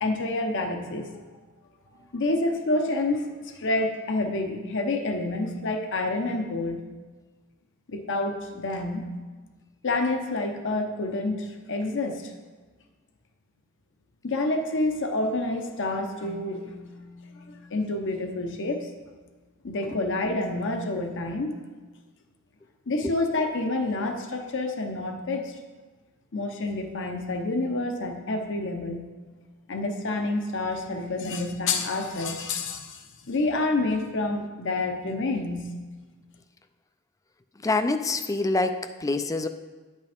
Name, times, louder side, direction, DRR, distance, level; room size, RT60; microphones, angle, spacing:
voice 1, 0.0-1.1 2.1-6.9 7.9-9.1 9.8-12.3 14.2-16.6 17.5-18.9 19.6-21.6 22.9-25.5 26.3-29.1 29.7-33.0 33.2-35.7, left 2 dB, 60° left, 4 dB, 0.8 m, -28 dB
Keyboard (musical), 16.2-19.5, left 2 dB, 35° right, 1.0 m, -49 dB
voice 2, 37.6-39.5, left 2 dB, 15° left, 9 dB, 0.4 m, -26 dB
10.5 x 8.3 x 3.5 m, 1.3 s
head